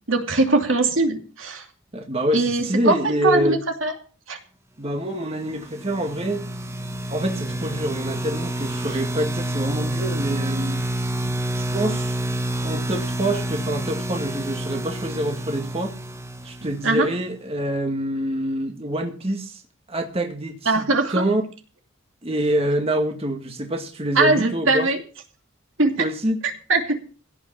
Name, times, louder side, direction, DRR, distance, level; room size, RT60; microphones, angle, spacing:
voice 1, 0.1-1.6 2.3-3.9 4.3-4.4 11.2-11.3 16.8-17.1 20.7-21.1 24.2-25.0 25.8-26.1 26.7-27.0, right 3 dB, 65° right, 2.7 m, -21 dB
voice 2, 1.9-3.6 4.8-6.5 7.1-10.9 11.5-12.2 12.6-15.9 16.4-19.6 19.9-21.4 22.2-24.9 26.0-26.4, right 1 dB, 30° right, 1.9 m, -26 dB
sound 1, 5.4-17.2, right 1 dB, 15° right, 1.1 m, -28 dB
16.5 x 6.4 x 7.5 m
head